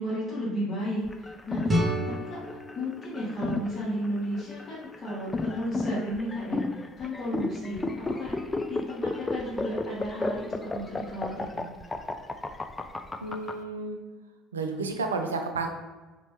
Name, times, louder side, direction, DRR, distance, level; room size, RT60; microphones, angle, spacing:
voice 1, 0.0-1.7 2.0-2.4 2.7-6.6 7.0-8.4 8.7-11.7, equal, 35° left, -9 dB, 1.2 m, -33 dB
sound 1, 1.1-13.5, left 3 dB, 15° left, 0.3 m, -32 dB
sound 2, 1.7-4.6, equal, 25° right, 0.8 m, -32 dB
voice 2, 13.2-14.0 14.5-15.7, right 3 dB, 75° right, 5 dB, 0.4 m, -31 dB
4.1 x 2.9 x 3.0 m, 1.3 s
figure-of-eight pair, 60°, 0 cm